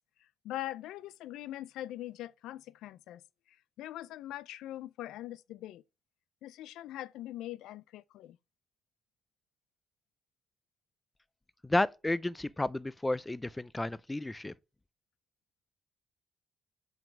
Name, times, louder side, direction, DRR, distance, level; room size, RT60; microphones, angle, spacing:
voice 1, 0.4-3.2 3.8-5.8 6.4-8.4, left 14 dB, 90° left, 0.4 m, -42 dB
voice 2, 11.6-14.5, left 2 dB, 15° left, 0.4 m, -32 dB
5.8 x 5.3 x 6.0 m
cardioid pair, 90°, 0 cm